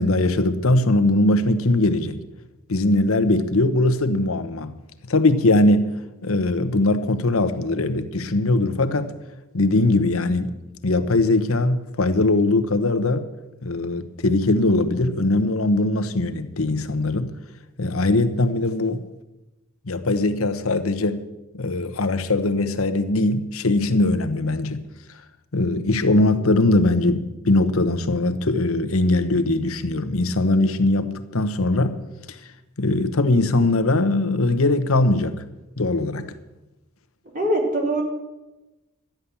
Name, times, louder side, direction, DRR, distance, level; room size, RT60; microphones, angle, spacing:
voice 1, 0.0-2.2 2.7-4.8 5.1-5.9 6.2-9.1 9.5-10.6 10.8-13.2 13.6-17.3 17.8-19.0 19.8-21.2 21.5-24.8 25.5-32.0 32.3-32.4 32.8-35.4 35.8-36.3, left 2 dB, 75° left, 1.0 m, -21 dB
voice 2, 37.3-38.0, right 1 dB, 40° right, 3.3 m, -22 dB
13.0 x 10.5 x 7.0 m
head